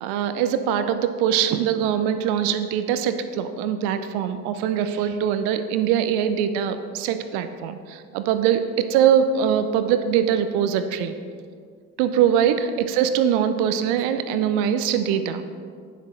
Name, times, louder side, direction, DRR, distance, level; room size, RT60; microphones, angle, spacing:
voice 1, 0.0-11.1 12.0-15.4, right 9 dB, 70° right, 10 dB, 0.7 m, -22 dB
9.2 x 7.6 x 3.2 m, 2.1 s
hypercardioid pair, 55°, 40 cm